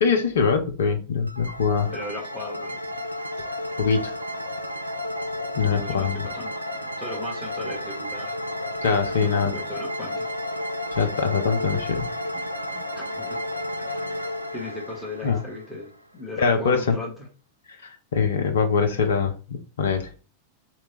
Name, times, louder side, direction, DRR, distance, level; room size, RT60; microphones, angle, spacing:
voice 1, 0.0-1.9 3.8-4.1 5.6-6.3 8.8-9.5 10.9-12.1 15.2-15.4 16.4-17.0 17.8-20.1, left 5 dB, 65° left, 0.7 m, -23 dB
sound 1, 1.2-16.0, left 1 dB, 85° right, 0.3 m, -32 dB
voice 2, 1.9-3.0 5.7-6.7 7.0-8.4 9.2-10.3 12.7-13.4 13.8-14.1 14.5-17.1, left 2 dB, ahead, 1.3 m, -37 dB
3.4 x 3.1 x 4.1 m
figure-of-eight pair, 90°, 0 cm